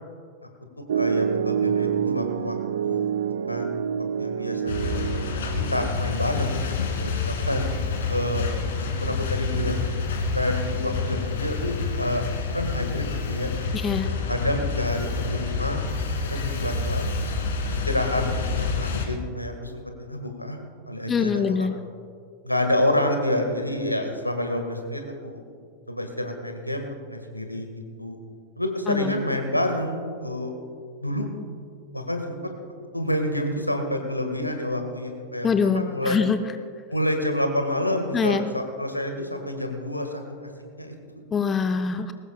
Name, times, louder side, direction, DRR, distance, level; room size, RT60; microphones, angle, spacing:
voice 1, 0.8-2.6 2.8-5.0 5.7-6.7 7.0-7.7 8.1-8.5 8.7-9.9 10.3-13.5 14.0-17.1 17.8-20.6 20.9-21.7 22.4-25.4 25.9-27.7 28.0-28.2 28.6-30.5 31.0-31.3 31.9-32.5 32.9-36.2 36.9-40.5 40.8-41.2, left 1 dB, 85° left, 5 dB, 1.7 m, -28 dB
Piano, 0.9-5.9, right 8 dB, 65° right, 0.3 m, -27 dB
sound 1, 4.7-19.1, left 4 dB, 60° left, 2.2 m, -28 dB
voice 2, 13.7-14.1 21.1-21.7 28.9-29.2 35.4-36.4 38.1-38.5 41.3-42.1, left 6 dB, 20° left, 9 dB, 0.6 m, -24 dB
21.0 x 18.5 x 2.3 m, 2.2 s
figure-of-eight pair, 90°, 0 cm